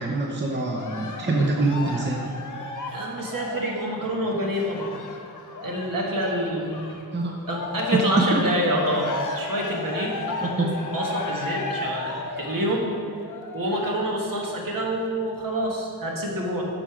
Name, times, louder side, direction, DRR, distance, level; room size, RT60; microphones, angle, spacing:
voice 1, 0.0-2.2 7.1-7.4 7.9-8.0 8.3-8.4 10.4-10.7, right 2 dB, 30° right, -1 dB, 0.7 m, -25 dB
Cheering, 0.7-7.0 7.4-14.0 14.6-14.7, left 3 dB, 55° left, 0.9 m, -34 dB
voice 2, 2.9-4.9 5.6-6.9 7.5-9.1 9.3-10.7 10.9-12.9 13.5-16.6, right 1 dB, 60° right, -1 dB, 1.5 m, -27 dB
8.9 x 6.4 x 4.9 m, 2.2 s
wide cardioid pair, 155°, 37 cm